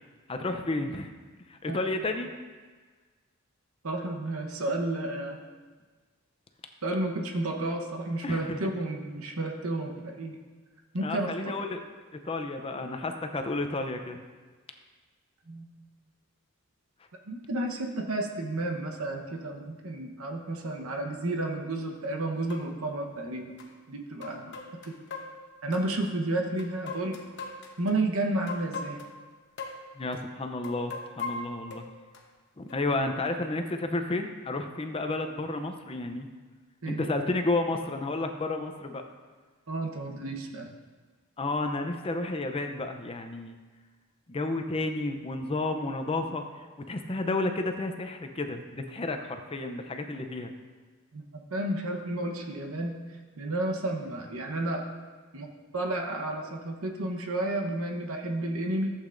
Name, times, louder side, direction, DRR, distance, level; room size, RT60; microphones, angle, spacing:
voice 1, 0.3-1.1 1.5-2.3 8.2-8.6 11.0-11.8 12.3-14.2 30.0-31.8 32.6-36.3 36.9-39.0 41.4-43.6 44.3-46.4 46.9-50.5, left 2 dB, 25° left, 6 dB, 0.5 m, -31 dB
voice 2, 3.8-5.4 6.8-10.4 10.9-11.5 15.5-15.7 17.3-23.5 23.9-24.5 24.9-25.0 25.6-27.2 27.8-29.0 36.8-37.0 39.7-40.7 51.1-53.0 53.4-54.8 55.3-55.5 55.7-58.9, right 2 dB, 70° right, 2 dB, 1.0 m, -31 dB
sound 1, 21.8-21.9 22.5-22.7 23.6-23.7 24.2-25.8 26.6-27.9 28.5-29.2 29.6-29.8 30.1-30.2 30.6-32.2 32.7-32.8, left 3 dB, 55° left, 1.0 m, -39 dB
14.5 x 8.2 x 2.6 m, 1.4 s
head